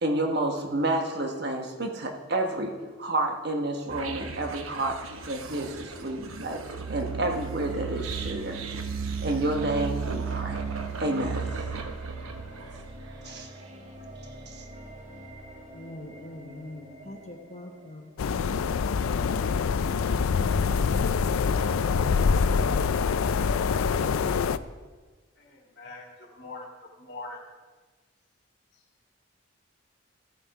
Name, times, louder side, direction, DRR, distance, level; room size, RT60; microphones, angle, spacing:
voice 1, 0.0-5.0 5.2-6.6 6.9-8.6 9.0-10.6 11.0-11.5 13.2-13.5 14.5-14.6, right 2 dB, 50° right, 1.2 m, -30 dB
sound 1, 3.9-13.1, right 5 dB, 85° right, 0.9 m, -35 dB
sound 2, 9.2-18.3, equal, 35° right, 1.7 m, -46 dB
voice 2, 15.7-18.1 20.4-21.2, left 1 dB, 35° left, 1.1 m, -43 dB
sound 3, 18.2-24.6, left 5 dB, 85° left, 0.4 m, -25 dB
voice 3, 25.4-26.1 26.3-26.7 27.0-27.4, left 3 dB, 50° left, 1.7 m, -42 dB
14.5 x 7.1 x 4.8 m
head